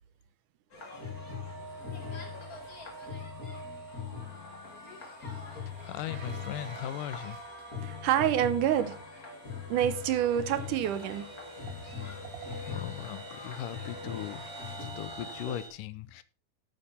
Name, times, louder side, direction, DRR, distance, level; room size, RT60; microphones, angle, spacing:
sound 1, 0.7-15.5, left 7 dB, 30° left, 2.2 m, -42 dB
sound 2, 0.8-15.7, right 2 dB, 55° right, 4.8 m, -46 dB
voice 1, 5.8-7.4 12.7-14.5 14.8-16.2, left 11 dB, 80° left, 2.3 m, -38 dB
voice 2, 7.8-9.0 9.7-11.3 15.5-15.6, right 11 dB, 75° right, 2.3 m, -27 dB
12.0 x 8.7 x 4.2 m
omnidirectional pair, 3.8 m